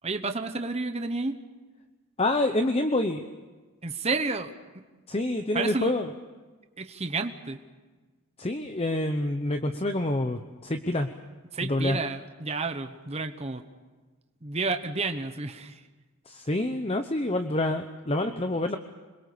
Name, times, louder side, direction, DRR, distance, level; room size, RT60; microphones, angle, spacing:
voice 1, 0.0-1.4 3.8-4.8 5.5-5.9 6.8-7.6 11.5-13.6 14.4-15.9, right 3 dB, 30° right, 7 dB, 1.0 m, -31 dB
voice 2, 2.2-3.2 5.1-6.1 8.4-11.1 11.6-12.0 16.3-18.8, left 1 dB, 25° left, 7 dB, 0.9 m, -27 dB
26.5 x 22.0 x 6.9 m, 1.3 s
head